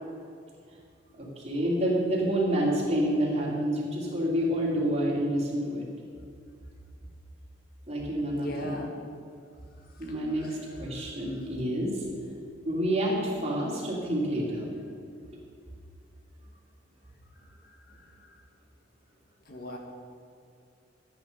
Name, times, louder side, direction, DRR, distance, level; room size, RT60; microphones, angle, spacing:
voice 1, 1.2-5.8 7.9-8.8 10.0-12.0 12.6-14.7, right 1 dB, 35° right, -4 dB, 3.1 m, -28 dB
voice 2, 8.3-8.9 19.5-19.8, left 1 dB, 55° left, 1 dB, 1.7 m, -36 dB
13.5 x 9.5 x 5.4 m, 2.4 s
head